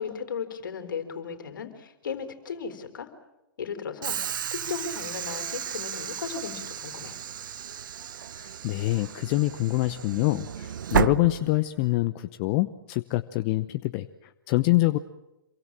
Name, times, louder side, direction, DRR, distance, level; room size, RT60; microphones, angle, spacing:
voice 1, 0.0-3.1 3.6-7.1, left 6 dB, 65° left, 8 dB, 4.1 m, -36 dB
Train / Sliding door, 4.0-12.0, right 9 dB, 60° right, 0.8 m, -33 dB
voice 2, 8.3-15.0, left 18 dB, 35° left, 11 dB, 0.8 m, -25 dB
27.5 x 23.5 x 7.5 m, 0.96 s
hypercardioid pair, 125°, 12 cm